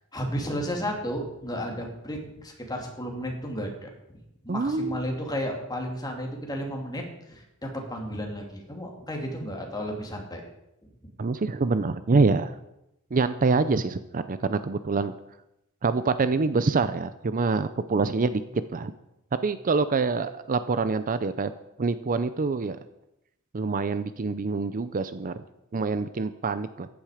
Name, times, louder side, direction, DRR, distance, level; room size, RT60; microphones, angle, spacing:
voice 1, 0.1-10.4 11.0-11.1, equal, 20° left, 1 dB, 2.5 m, -33 dB
voice 2, 4.5-5.0 11.2-12.5 13.1-15.1 15.8-18.4 18.7-18.9 19.4-21.5 21.8-22.8 23.5-25.3 25.7-26.9, right 4 dB, 40° right, 12 dB, 0.5 m, -25 dB
14.0 x 10.5 x 5.0 m, 0.87 s
head